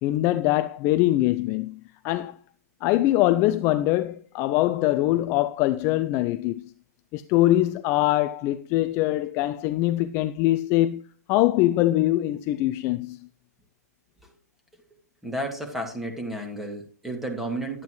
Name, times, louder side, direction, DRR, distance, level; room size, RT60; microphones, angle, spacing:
voice 1, 0.0-2.4 2.8-6.7 7.1-13.2, left 15 dB, 30° left, 0.4 m, -23 dB
voice 2, 15.2-17.8, right 1 dB, 5° right, 2.0 m, -32 dB
11.0 x 9.1 x 3.1 m
hypercardioid pair, 130°, 9 cm